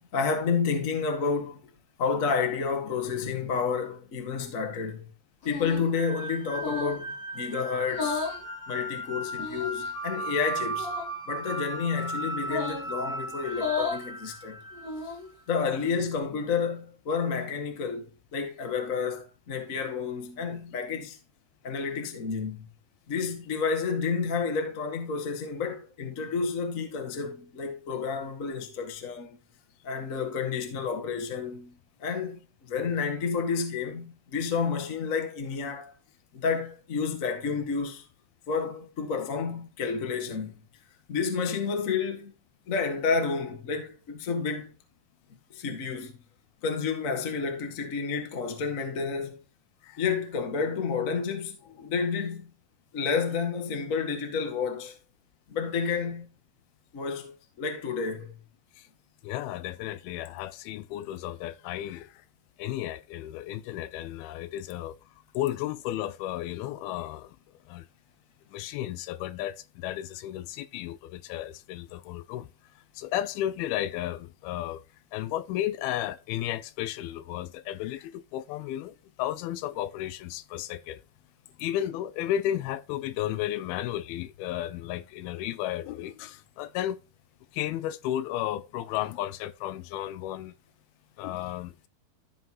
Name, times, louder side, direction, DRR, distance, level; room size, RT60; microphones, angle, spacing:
voice 1, 0.0-1.7 2.0-5.1 5.4-8.3 8.7-10.9 11.3-14.6 15.5-21.2 21.6-22.6 23.1-29.4 29.8-35.9 36.3-38.0 38.5-40.5 41.1-42.3 42.7-44.7 45.5-46.2 46.6-49.4 50.0-52.5 52.9-55.0 55.5-56.3 56.9-57.3 57.6-58.3, left 5 dB, 65° left, 0.8 m, -30 dB
sound 1, 5.4-5.9 6.5-7.0 7.8-8.4 9.3-9.9 10.7-11.1 12.4-12.9 13.5-14.0 14.7-15.3, left 5 dB, 45° left, 5.2 m, -33 dB
sound 2, 5.9-15.1, right 1 dB, 30° left, 1.5 m, -36 dB
voice 2, 59.2-62.1 62.6-65.0 65.3-67.4 67.7-67.9 68.5-72.5 73.0-74.8 75.1-81.0 81.6-87.0 87.5-90.5 91.2-91.9, left 12 dB, 80° left, 2.4 m, -33 dB
13.0 x 5.5 x 3.0 m
omnidirectional pair, 4.4 m